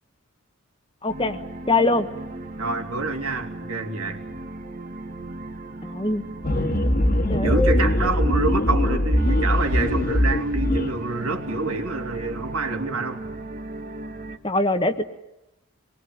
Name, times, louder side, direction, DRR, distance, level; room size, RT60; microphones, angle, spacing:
voice 1, 1.0-1.4 1.7-2.1 5.8-6.2 7.3-7.9 14.4-15.1, left 2 dB, 25° left, 9 dB, 1.3 m, -23 dB
sound 1, 1.1-14.4, right 1 dB, 35° right, 1.6 m, -37 dB
voice 2, 2.6-4.2 7.4-13.2, right 3 dB, 85° right, 4 dB, 3.1 m, -27 dB
sound 2, 6.4-10.9, left 1 dB, 40° left, 1.8 m, -21 dB
25.5 x 21.5 x 9.4 m, 0.94 s
head